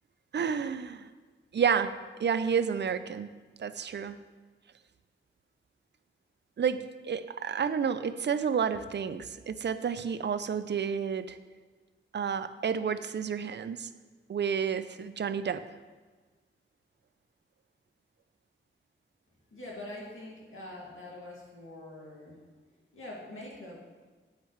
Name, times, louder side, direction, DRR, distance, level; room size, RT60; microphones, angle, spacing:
voice 1, 0.3-1.1 1.5-4.2 6.6-11.4 12.1-13.9 14.3-15.6, right 7 dB, 60° right, 12 dB, 0.4 m, -30 dB
voice 2, 19.5-22.4 22.9-23.8, left 1 dB, 80° left, -4 dB, 2.2 m, -44 dB
9.0 x 8.1 x 3.2 m, 1.4 s
wide cardioid pair, 110°, 21 cm